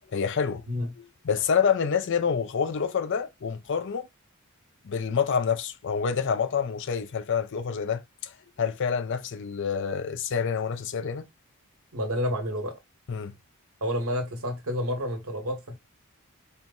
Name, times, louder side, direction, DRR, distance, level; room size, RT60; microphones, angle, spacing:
voice 1, 0.1-0.6 1.0-4.1 4.8-8.3 8.6-11.3 13.1-13.3, left 6 dB, 55° left, 0.5 m, -27 dB
voice 2, 11.9-12.7 13.8-15.7, equal, 75° right, 1.3 m, -29 dB
4.4 x 2.1 x 3.8 m
head